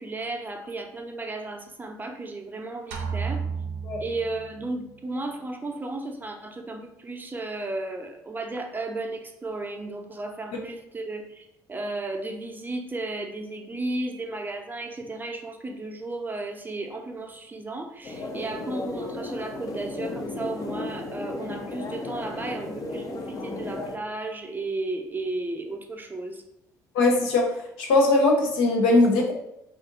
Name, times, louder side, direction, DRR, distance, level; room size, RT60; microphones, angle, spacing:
voice 1, 0.0-3.4 4.0-26.4, right 2 dB, 25° right, 3 dB, 0.6 m, -34 dB
sound 1, 2.9-4.8, right 5 dB, 85° right, 0.5 m, -32 dB
sound 2, 18.0-24.0, left 2 dB, 45° left, 0.6 m, -35 dB
voice 2, 26.9-27.5 27.8-29.3, left 2 dB, 85° left, 0 dB, 0.7 m, -20 dB
2.5 x 2.5 x 3.7 m, 0.82 s
supercardioid pair, 65°, 8 cm